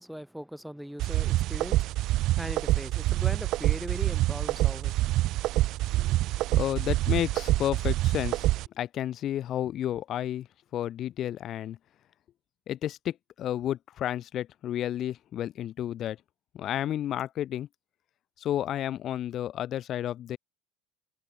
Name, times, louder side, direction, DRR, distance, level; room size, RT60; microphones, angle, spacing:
voice 1, 0.0-5.3, equal, ahead, 4.2 m, -40 dB
sound 1, 1.0-8.7, right 16 dB, 55° right, 2.3 m, -26 dB
voice 2, 6.5-8.5 8.8-10.5 10.7-11.8 12.7-16.2 16.5-17.7 18.4-20.4, left 11 dB, 45° left, 1.1 m, -31 dB
supercardioid pair, 120°, 0 cm